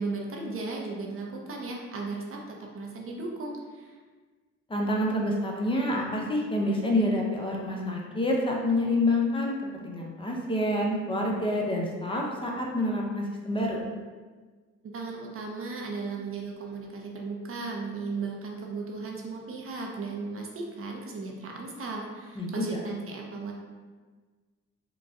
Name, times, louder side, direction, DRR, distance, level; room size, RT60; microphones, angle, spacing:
voice 1, 0.0-4.0 14.9-23.5, right 3 dB, 45° right, 0 dB, 0.7 m, -36 dB
voice 2, 4.7-13.8 22.4-22.8, left 1 dB, 15° left, -1 dB, 0.7 m, -27 dB
3.9 x 2.2 x 3.6 m, 1.4 s
cardioid pair, 90°, 30 cm